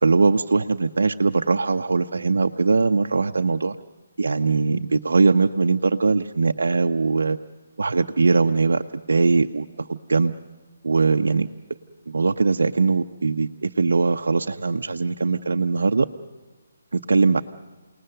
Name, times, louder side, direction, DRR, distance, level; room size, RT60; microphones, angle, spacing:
voice 1, 0.0-3.8 4.2-7.4 7.8-10.3 10.8-11.5 12.1-16.1 16.9-17.4, right 4 dB, 80° right, 5 dB, 0.7 m, -21 dB
29.5 x 19.5 x 6.7 m, 1.3 s
hypercardioid pair, 165°, 0 cm